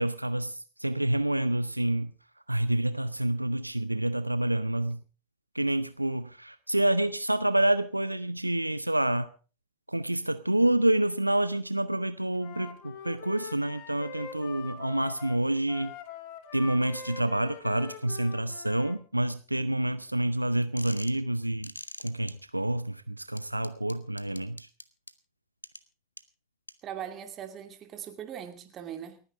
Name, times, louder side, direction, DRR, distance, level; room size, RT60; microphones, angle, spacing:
voice 1, 0.0-2.1 2.5-5.0 5.5-9.3 9.9-15.9 16.5-21.7 22.0-24.7, right 1 dB, 85° right, 0.6 m, -28 dB
Wind instrument woodwind instrument, 12.3-19.0, left 6 dB, 45° left, 2.2 m, -44 dB
sound 1, 20.8-21.2 21.6-22.3 23.4-25.1 25.6-25.8 26.2-26.3 26.7-26.8, left 2 dB, 85° left, 0.9 m, -42 dB
voice 2, 26.8-29.2, right 9 dB, 30° right, 2.4 m, -40 dB
29.0 x 9.7 x 3.6 m
figure-of-eight pair, 90°, 0 cm